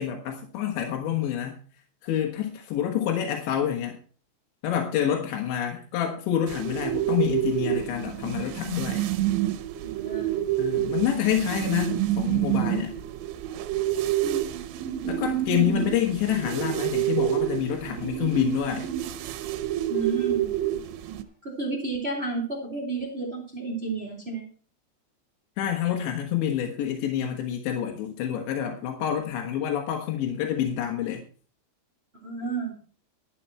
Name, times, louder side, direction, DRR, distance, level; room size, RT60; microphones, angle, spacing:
voice 1, 0.0-1.6 2.0-4.0 4.6-9.1 10.6-13.0 15.0-18.9 25.6-31.2, left 10 dB, 85° left, 2 dB, 3.6 m, -27 dB
sound 1, 6.5-21.2, right 13 dB, 90° right, 3.1 m, -28 dB
voice 2, 9.8-10.4 14.2-14.6 15.6-15.9 19.9-20.5 21.4-24.4 32.1-32.8, right 3 dB, 25° right, 0 dB, 1.2 m, -32 dB
11.5 x 10.0 x 4.4 m, 0.40 s
omnidirectional pair, 5.1 m